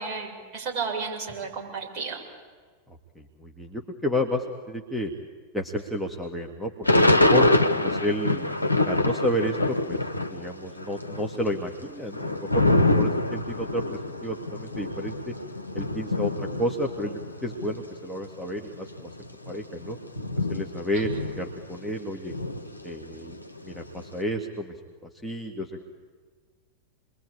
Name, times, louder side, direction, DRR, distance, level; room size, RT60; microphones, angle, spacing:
voice 1, 0.0-2.2, right 5 dB, 35° right, 0 dB, 7.2 m, -32 dB
voice 2, 2.9-5.1 5.5-7.5 7.8-8.5 8.8-10.0 10.3-15.3 15.7-19.1 19.5-20.0 20.4-21.1 21.4-22.3 22.8-23.4 23.6-24.7 25.2-25.8, left 1 dB, ahead, -1 dB, 2.0 m, -31 dB
Thunder / Rain, 6.8-10.5 10.8-17.8 18.4-18.5 18.7-21.9 22.3-24.0, left 2 dB, 85° left, 1.1 m, -25 dB
29.5 x 22.0 x 8.7 m, 1.5 s
figure-of-eight pair, 90°, 0 cm